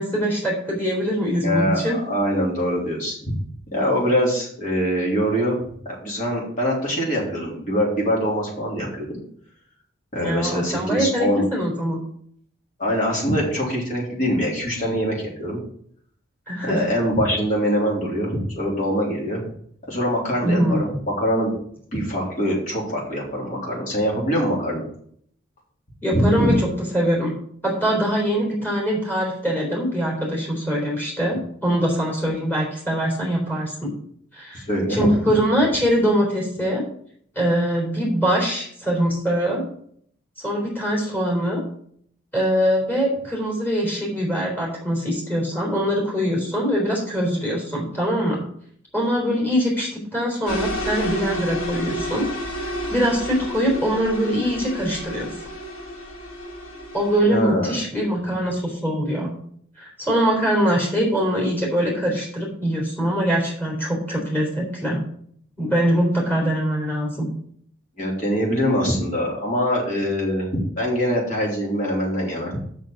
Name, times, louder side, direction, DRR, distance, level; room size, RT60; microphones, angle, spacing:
voice 1, 0.0-2.0 10.2-12.0 16.5-16.9 20.4-20.9 26.0-26.7 26.9-27.3 27.6-33.9 34.3-34.6 34.9-36.8 37.4-39.6 40.4-41.6 42.3-48.4 48.9-52.3 52.6-55.3 56.9-59.3 59.8-65.0 65.6-67.3, equal, 10° left, -3 dB, 3.8 m, -23 dB
voice 2, 1.4-3.4 3.7-5.6 5.9-9.2 10.1-11.5 12.8-15.6 16.6-19.4 19.9-20.9 21.2-21.5 21.9-24.9 26.1-26.6 34.5-35.1 57.3-57.8 68.0-70.5 70.8-72.6, equal, 40° left, -3 dB, 3.4 m, -23 dB
sound 1, 50.5-57.2, equal, 90° left, 2.4 m, -31 dB
6.6 x 6.3 x 7.2 m, 0.63 s
head